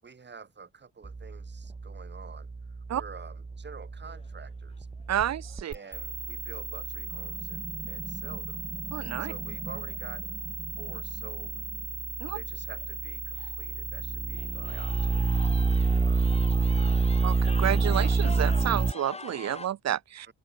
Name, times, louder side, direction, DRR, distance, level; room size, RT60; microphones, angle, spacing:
voice 1, 0.0-2.5 2.9-4.9 5.7-8.6 9.2-10.4 10.8-11.6 12.3-16.2 16.6-16.9, right 5 dB, 35° right, 7.1 m, -48 dB
sound 1, 1.0-18.9, right 4 dB, 15° right, 0.7 m, -30 dB
sound 2, 4.0-4.5 5.0-5.1 5.4-6.0 9.2-9.3 10.4-10.5 10.8-11.1 11.6-11.7 12.4-12.5 12.8-12.9 13.3-13.8 14.3-19.7, left 3 dB, 20° left, 2.1 m, -44 dB
voice 2, 5.1-5.7 8.9-9.3 12.2-12.4 17.2-20.3, right 11 dB, 60° right, 1.2 m, -30 dB
cardioid pair, 90°, 30 cm